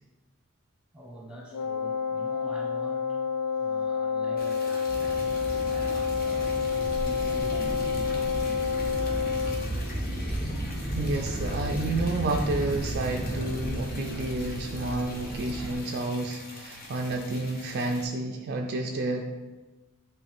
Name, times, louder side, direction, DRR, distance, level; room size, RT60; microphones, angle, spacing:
voice 1, 0.9-3.2 3.6-6.5 7.0-8.5 15.2-15.4, right 1 dB, 5° right, -3 dB, 1.2 m, -45 dB
Wind instrument woodwind instrument, 1.5-9.7, left 6 dB, 80° left, 0.3 m, -29 dB
Liquid, 4.4-18.0, left 2 dB, 40° left, 1.0 m, -44 dB
sound 1, 4.9-15.8, right 1 dB, 15° left, 1.8 m, -34 dB
voice 2, 10.9-19.3, right 2 dB, 45° right, 3 dB, 0.4 m, -30 dB
8.6 x 3.3 x 3.5 m, 1.2 s
head